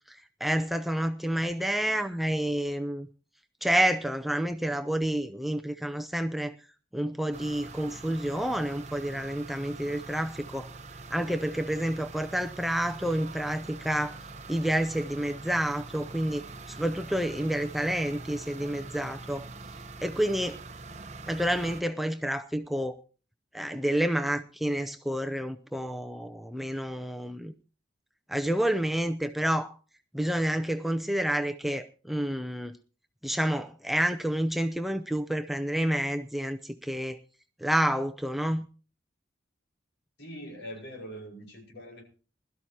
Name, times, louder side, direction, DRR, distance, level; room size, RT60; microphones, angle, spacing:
voice 1, 0.1-3.1 3.6-6.5 6.9-10.7 11.1-14.1 14.5-19.5 20.0-20.6 21.3-23.0 23.5-27.5 28.3-29.7 30.1-32.7 33.2-37.2 37.6-38.7, right 1 dB, ahead, 0.6 m, -29 dB
sound 1, 7.3-21.8, right 3 dB, 35° right, 1.0 m, -44 dB
voice 2, 40.2-42.0, equal, 70° left, 5.2 m, -42 dB
21.0 x 13.0 x 2.8 m
head